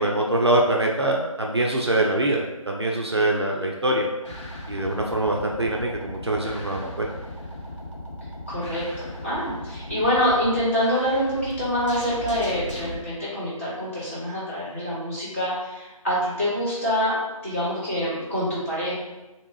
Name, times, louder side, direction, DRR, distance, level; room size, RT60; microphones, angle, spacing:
voice 1, 0.0-4.1 4.7-7.1, right 1 dB, 45° right, -1 dB, 0.4 m, -24 dB
sound 1, 4.2-13.0, left 1 dB, 55° left, 0.9 m, -37 dB
voice 2, 8.5-18.9, equal, 25° left, -10 dB, 1.4 m, -26 dB
3.4 x 2.9 x 2.9 m, 1.1 s
figure-of-eight pair, 160°, 18 cm